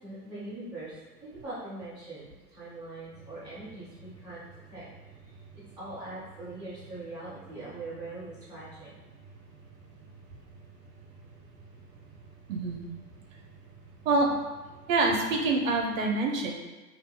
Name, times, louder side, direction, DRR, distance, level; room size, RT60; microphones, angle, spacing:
voice 1, 0.0-1.0 1.2-4.4 4.7-4.9 5.2-9.1, right 2 dB, ahead, -15 dB, 0.3 m, -42 dB
sound 1, 3.1-15.5, right 4 dB, 20° right, 0.9 m, -53 dB
voice 2, 12.5-12.8 14.0-14.3 14.9-16.5, right 3 dB, 55° right, 1 dB, 0.8 m, -26 dB
2.8 x 2.5 x 3.5 m, 1.3 s
figure-of-eight pair, 105°, 48 cm